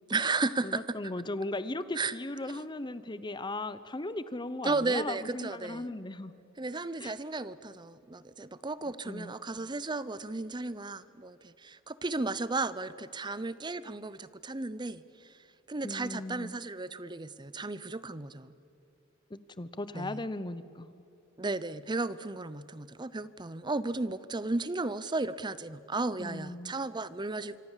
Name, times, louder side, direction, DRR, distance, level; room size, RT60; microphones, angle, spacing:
voice 1, 0.1-1.0 2.0-2.1 4.6-5.9 6.6-15.4 15.7-18.5 19.9-20.2 21.4-27.6, right 3 dB, 20° right, 16 dB, 0.7 m, -34 dB
voice 2, 0.6-6.3 7.0-7.1 9.0-9.3 15.8-16.6 19.3-21.0 26.2-26.7, left 2 dB, 20° left, 14 dB, 0.8 m, -37 dB
25.5 x 25.0 x 7.4 m, 2.8 s
head